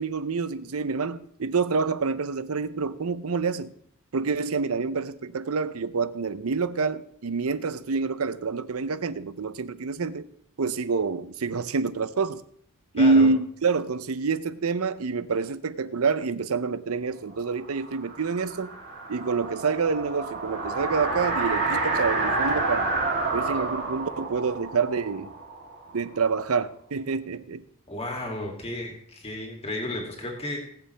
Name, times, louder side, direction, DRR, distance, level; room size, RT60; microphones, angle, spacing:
voice 1, 0.0-3.7 4.1-10.3 10.6-12.4 12.9-18.7 19.1-22.9 23.3-25.3 25.9-27.6, right 4 dB, 75° right, 0.6 m, -27 dB
voice 2, 13.0-13.3 27.9-30.6, left 1 dB, 30° left, 2.5 m, -33 dB
sound 1, 17.6-26.3, right 3 dB, 50° right, 2.9 m, -29 dB
19.5 x 7.7 x 3.4 m
head